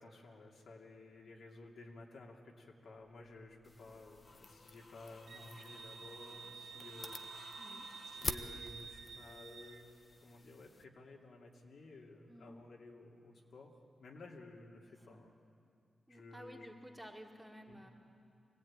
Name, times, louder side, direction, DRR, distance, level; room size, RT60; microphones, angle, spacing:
voice 1, 0.0-7.6 8.2-9.9 10.2-13.7 14.0-15.3 16.1-16.7 17.7-17.8, left 2 dB, 70° left, -1 dB, 2.8 m, -54 dB
sound 1, 3.4-8.4, left 3 dB, 55° left, 1.9 m, -58 dB
sound 2, 3.6-10.8, left 3 dB, 30° left, 0.8 m, -48 dB
Wind instrument woodwind instrument, 5.3-9.8, right 6 dB, 70° right, 1.1 m, -51 dB
voice 2, 7.6-7.9 12.3-12.5 14.8-15.2 16.1-17.9, equal, 5° right, 0 dB, 1.9 m, -54 dB
24.5 x 18.0 x 8.9 m, 2.5 s
wide cardioid pair, 155°, 0 cm